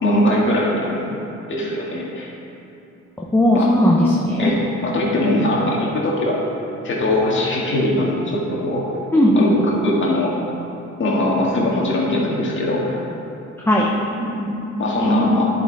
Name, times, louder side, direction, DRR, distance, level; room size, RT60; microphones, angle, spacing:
voice 1, 0.0-1.1 1.5-2.3 3.5-3.7 4.4-4.6 4.8-6.4 6.8-8.8 9.4-10.4 11.0-13.0 14.8-15.6, left 1 dB, 40° left, -4 dB, 1.9 m, -21 dB
voice 2, 3.2-4.5 9.1-9.5 13.7-13.9 14.2-14.7 15.1-15.4, left 1 dB, 10° left, -3 dB, 0.8 m, -17 dB
10.5 x 4.6 x 4.7 m, 2.9 s
cardioid pair, 90°, 30 cm